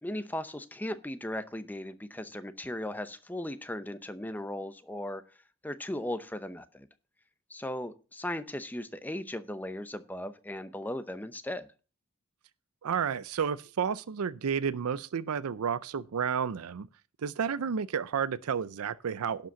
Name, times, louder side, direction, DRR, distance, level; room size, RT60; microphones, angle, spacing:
voice 1, 0.0-5.2 5.6-6.9 7.5-11.7, left 1 dB, 10° left, 0.7 m, -37 dB
voice 2, 12.8-16.9 17.2-19.5, right 7 dB, 90° right, 0.5 m, -31 dB
11.5 x 5.2 x 6.9 m
head